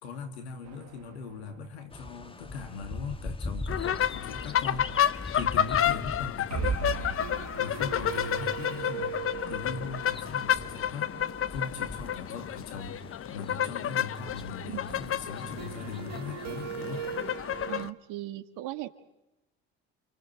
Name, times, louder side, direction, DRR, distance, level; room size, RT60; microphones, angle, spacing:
voice 1, 0.0-4.9 5.3-9.2 9.5-11.2 11.5-17.1, left 4 dB, 90° left, 6 dB, 2.4 m, -40 dB
sound 1, 0.7-1.9 2.1-2.2 2.5-2.6 6.5-12.2 14.9-17.9, right 8 dB, 55° right, 2.2 m, -39 dB
sound 2, 1.9-17.7, left 3 dB, 15° left, 1.6 m, -43 dB
sound 3, 3.7-17.9, left 10 dB, 45° left, 0.9 m, -31 dB
voice 2, 17.7-18.9, right 15 dB, 75° right, 9 dB, 1.9 m, -38 dB
29.5 x 27.5 x 4.6 m, 0.90 s
hypercardioid pair, 60°, 32 cm